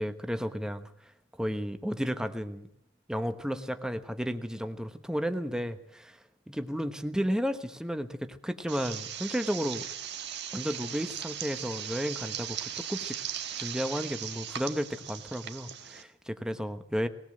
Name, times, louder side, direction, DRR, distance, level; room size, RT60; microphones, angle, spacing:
voice 1, 0.0-2.7 3.1-6.2 6.5-9.8 10.5-13.2 13.6-17.1, equal, 5° right, 8 dB, 1.1 m, -33 dB
sound 1, 8.7-16.0, right 9 dB, 60° right, 1.7 m, -38 dB
20.0 x 18.5 x 7.6 m, 0.65 s
head